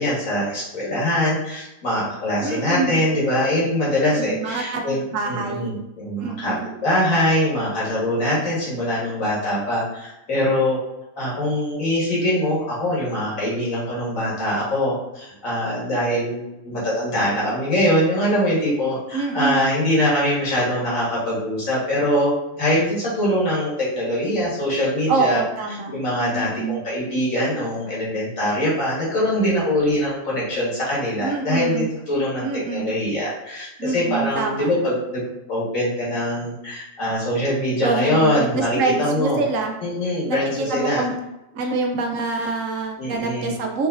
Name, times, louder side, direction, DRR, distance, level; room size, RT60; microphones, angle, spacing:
voice 1, 0.0-6.5 6.8-10.8 11.2-25.4 25.9-35.2 35.5-39.4 39.8-41.0 43.0-43.5, left 1 dB, 85° left, -6 dB, 2.1 m, -23 dB
voice 2, 2.4-3.0 4.2-5.7 6.2-6.7 19.1-19.6 25.1-25.9 26.3-26.8 31.2-31.9 32.4-32.9 33.8-34.7 37.8-39.7 40.3-41.2 41.5-43.9, right 3 dB, 75° right, 2 dB, 1.1 m, -26 dB
5.5 x 2.9 x 2.6 m, 0.93 s
omnidirectional pair, 1.4 m